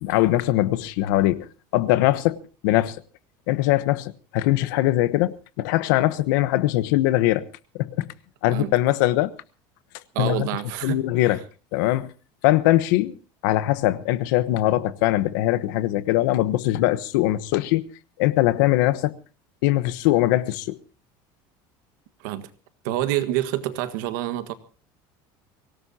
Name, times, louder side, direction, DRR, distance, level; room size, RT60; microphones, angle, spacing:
voice 1, 0.0-3.0 3.5-7.5 7.8-8.1 8.4-9.3 10.2-10.5 10.8-11.4 11.7-12.1 12.4-13.2 13.4-17.8 18.2-19.1 19.6-20.8, left 16 dB, 80° left, 1.1 m, -21 dB
voice 2, 10.1-11.4 22.2-22.5 22.8-24.5, right 14 dB, 80° right, 1.7 m, -27 dB
24.0 x 17.5 x 2.8 m
cardioid pair, 170°, 10 cm